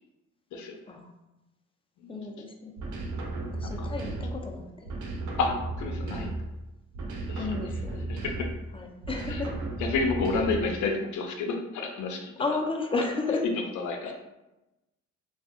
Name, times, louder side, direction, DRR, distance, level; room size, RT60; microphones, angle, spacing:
voice 1, 0.5-0.9 2.0-2.2 3.6-3.9 5.4-5.5 5.8-6.4 7.3-7.5 8.1-8.5 9.3-9.4 9.8-12.6 13.4-13.5 13.8-14.1, left 4 dB, 75° left, 3 dB, 0.5 m, -30 dB
voice 2, 2.1-2.8 3.5-4.9 7.4-8.0 8.7-9.5 12.4-13.4 14.0-14.1, left 3 dB, 20° left, 2 dB, 0.4 m, -32 dB
sound 1, 2.8-4.5 4.8-6.6 6.9-8.7 9.0-10.7, right 2 dB, 75° right, 0.6 m, -34 dB
2.6 x 2.4 x 2.5 m, 0.98 s
cardioid pair, 90°, 30 cm